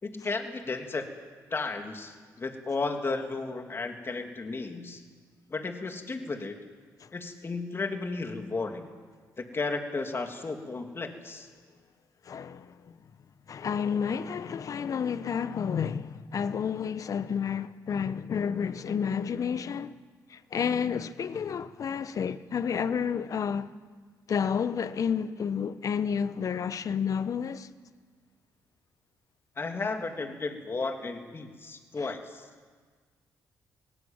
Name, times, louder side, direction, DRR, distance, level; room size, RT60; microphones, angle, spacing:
voice 1, 0.0-1.0 1.5-5.0 5.5-6.6 7.1-8.9 9.4-11.5 29.6-32.5, left 3 dB, 35° left, 3.0 m, -34 dB
voice 2, 12.2-13.0 13.5-20.0 20.3-23.7 24.3-27.7 32.0-32.1, left 7 dB, 55° left, 1.1 m, -30 dB
22.5 x 18.0 x 9.0 m
supercardioid pair, 70°, 7 cm